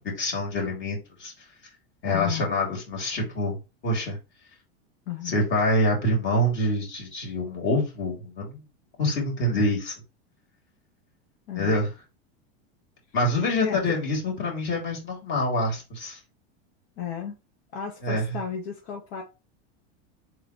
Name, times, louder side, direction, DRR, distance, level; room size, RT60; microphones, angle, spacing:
voice 1, 0.1-1.3 2.0-3.6 3.8-4.2 5.2-8.6 9.0-9.9 11.5-11.9 13.1-16.2 18.0-18.2, left 1 dB, 35° left, 2.8 m, -26 dB
voice 2, 2.0-2.5 5.1-5.3 11.5-11.7 13.6-14.0 17.0-17.4 17.7-19.2, left 8 dB, 65° left, 1.3 m, -33 dB
3.8 x 3.2 x 4.2 m
supercardioid pair, 120°, 33 cm